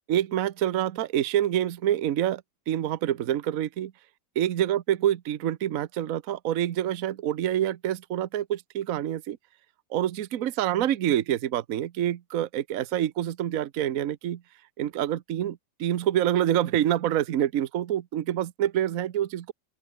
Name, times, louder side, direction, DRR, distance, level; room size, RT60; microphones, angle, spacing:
voice 1, 0.1-3.9 4.4-9.4 9.9-14.4 14.8-19.5, right 11 dB, 60° right, 1.2 m, -27 dB
open air
omnidirectional pair, 1.8 m